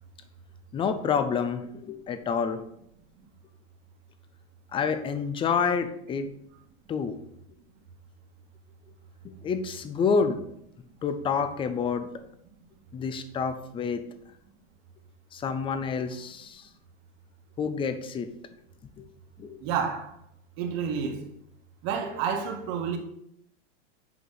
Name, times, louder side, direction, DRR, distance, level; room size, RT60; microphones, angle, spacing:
voice 1, 0.7-2.6 4.7-6.3 6.9-7.2 9.2-10.4 11.0-12.1 12.9-14.0 15.3-16.7 17.6-18.3 19.0-19.1 19.4-19.6, left 6 dB, 15° left, 0.5 m, -28 dB
voice 2, 19.6-20.1 20.6-21.2 21.8-23.0, right 7 dB, 45° right, 1.6 m, -29 dB
8.1 x 4.8 x 3.9 m
supercardioid pair, 135°, 36 cm